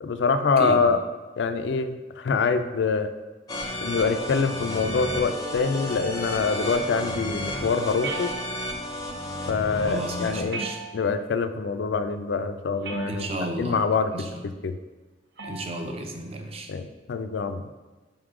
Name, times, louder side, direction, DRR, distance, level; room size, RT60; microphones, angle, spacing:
voice 1, 0.0-1.0 1.4-3.1 3.8-8.3 9.5-10.6 10.9-14.1 14.4-14.8 16.7-17.7, left 5 dB, 65° left, 9 dB, 0.3 m, -25 dB
sound 1, 3.5-10.4, left 1 dB, 20° left, 0.5 m, -32 dB
sound 2, 8.0-8.9 10.5-11.3 12.8-13.5 15.4-15.8, right 4 dB, 65° right, 0.8 m, -36 dB
voice 2, 9.9-10.8 13.1-13.8 14.1-14.4 15.4-16.7, right 1 dB, 30° right, 4 dB, 0.5 m, -33 dB
5.3 x 3.7 x 4.8 m, 1.2 s
head